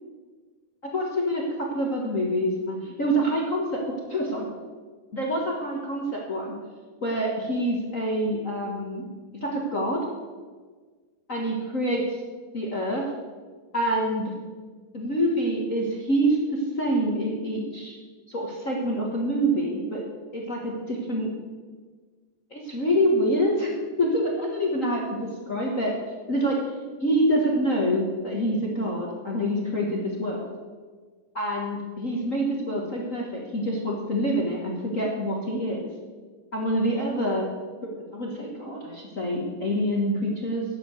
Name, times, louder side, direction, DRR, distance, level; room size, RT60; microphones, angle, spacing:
voice 1, 0.8-3.8 4.1-4.5 5.1-6.5 7.0-9.1 9.4-10.0 11.3-12.2 12.5-13.0 13.7-14.3 14.9-17.9 18.3-20.0 20.3-21.3 22.5-23.7 24.0-25.9 26.3-26.7 27.0-30.4 31.3-35.9 36.5-37.5 38.1-40.6, equal, 45° left, -2 dB, 1.0 m, -26 dB
10.5 x 7.6 x 8.0 m, 1.5 s
omnidirectional pair, 3.7 m